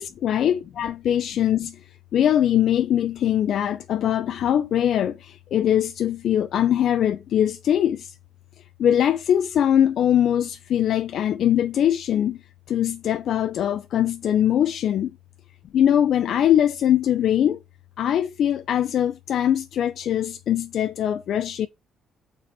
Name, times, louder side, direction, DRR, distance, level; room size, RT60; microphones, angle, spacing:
voice 1, 0.0-1.8 2.1-8.1 8.8-12.4 12.7-15.1 15.7-17.6 18.0-21.7, left 10 dB, 55° left, 0.5 m, -22 dB
6.9 x 4.4 x 6.0 m
cardioid pair, 160°, 0 cm